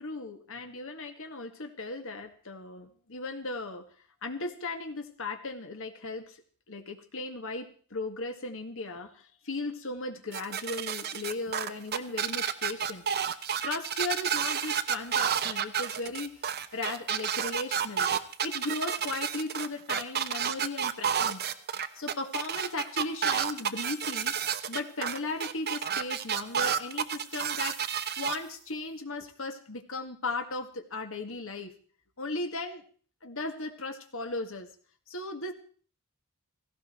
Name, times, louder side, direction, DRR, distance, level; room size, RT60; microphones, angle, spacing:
voice 1, 0.0-3.9 4.2-6.4 6.7-13.0 13.6-18.1 18.4-21.4 22.0-24.3 24.7-31.7 32.2-32.8 33.2-34.7 35.1-35.5, left 3 dB, 65° left, 6 dB, 2.0 m, -37 dB
sound 1, 10.3-28.4, right 8 dB, 45° right, 0.9 m, -30 dB
17.5 x 16.0 x 4.5 m, 0.43 s
head